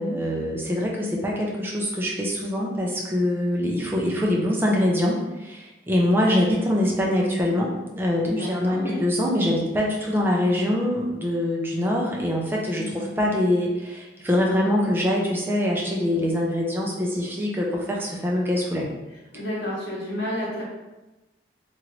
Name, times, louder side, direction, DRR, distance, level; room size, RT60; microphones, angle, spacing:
voice 1, 0.0-18.9, left 1 dB, 10° right, -2 dB, 0.4 m, -24 dB
voice 2, 8.2-9.0 12.8-13.1 19.3-20.6, left 1 dB, 80° left, -7 dB, 1.0 m, -30 dB
3.0 x 2.5 x 3.0 m, 1.1 s
head